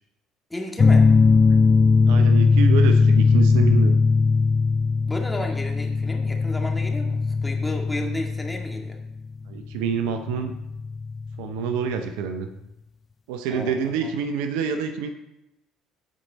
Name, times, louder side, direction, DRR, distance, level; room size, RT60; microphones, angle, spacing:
voice 1, 0.5-1.1 5.1-9.0 13.5-14.1, left 1 dB, 10° left, 1 dB, 1.9 m, -33 dB
sound 1, 0.8-12.0, left 4 dB, 30° left, 0.4 m, -19 dB
voice 2, 2.0-4.0 9.5-10.5 11.4-12.5 13.3-15.1, right 7 dB, 75° right, 8 dB, 0.6 m, -27 dB
13.5 x 4.7 x 4.0 m, 0.88 s
hypercardioid pair, 60°, 0 cm